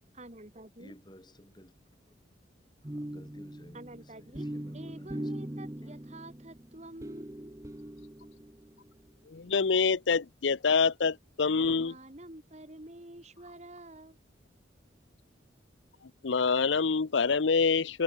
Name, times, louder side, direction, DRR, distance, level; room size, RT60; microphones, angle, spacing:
voice 1, 0.1-0.9 3.7-4.5 4.7-7.5 11.4-14.2, right 1 dB, 35° right, 2.7 m, -48 dB
voice 2, 0.8-1.7 2.8-5.3 5.8-5.9, equal, 25° left, 4.0 m, -55 dB
sound 1, 2.8-8.9, right 1 dB, 15° right, 0.8 m, -41 dB
voice 3, 9.3-11.9 16.0-18.0, left 5 dB, 75° left, 0.7 m, -26 dB
head